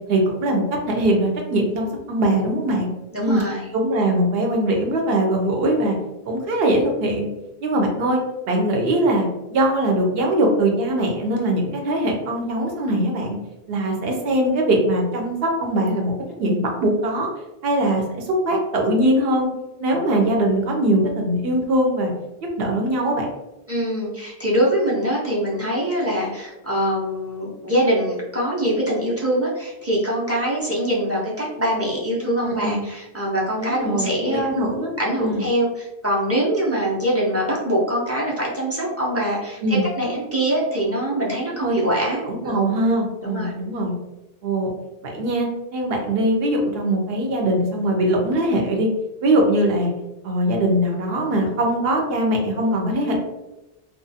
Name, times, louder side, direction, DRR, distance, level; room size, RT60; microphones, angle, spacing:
voice 1, 0.1-2.9 3.2-3.4 3.7-6.0 6.3-7.3 7.6-8.2 8.5-13.4 13.7-16.1 16.4-17.3 17.6-19.5 19.8-22.1 22.6-23.3 32.4-32.8 33.6-34.9 35.2-35.4 39.6-39.9 41.6-41.8 42.3-43.9 44.4-44.7 45.0-48.9 49.2-49.9 50.2-53.2, right 1 dB, 75° right, 1 dB, 0.8 m, -21 dB
voice 2, 3.1-3.7 23.7-34.7 35.0-42.8 43.2-43.5, right 1 dB, 20° right, -6 dB, 0.4 m, -23 dB
2.4 x 2.1 x 2.6 m, 0.98 s
omnidirectional pair, 1.0 m